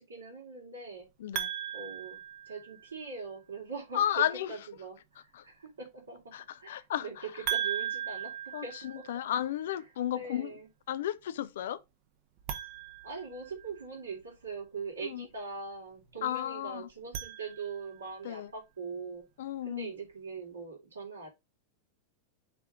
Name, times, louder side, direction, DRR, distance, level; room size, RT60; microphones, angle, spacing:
voice 1, 0.0-1.1 1.7-6.2 6.6-8.3 8.6-9.0 10.1-10.7 13.0-19.2 19.6-21.3, right 4 dB, 75° right, 3.4 m, -42 dB
sound 1, 1.3-3.0 7.5-9.5 12.4-14.0 16.9-18.1, right 9 dB, 45° right, 1.0 m, -38 dB
voice 2, 3.9-4.5 5.3-5.4 6.3-7.4 8.5-10.6 10.9-11.8 15.0-15.3 16.2-16.9 18.2-18.5 19.4-19.9, left 11 dB, 60° left, 0.5 m, -33 dB
5.9 x 3.7 x 5.1 m
figure-of-eight pair, 90°, 0 cm